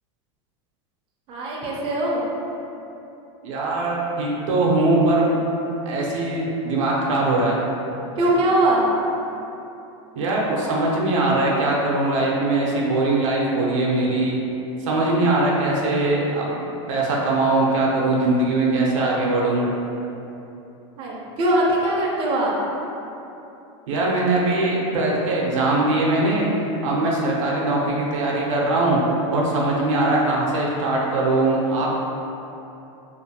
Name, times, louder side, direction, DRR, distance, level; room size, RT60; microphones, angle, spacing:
voice 1, 1.3-2.2 8.2-8.8 21.0-22.5, right 1 dB, 35° right, -4 dB, 0.5 m, -21 dB
voice 2, 3.4-5.4 5.9-7.6 10.2-14.4 14.8-16.5 16.9-19.7 23.9-26.5 26.8-29.0 29.3-31.9, right 2 dB, 85° right, -3 dB, 0.6 m, -21 dB
2.5 x 2.4 x 2.7 m, 2.9 s
supercardioid pair, 135°, 16 cm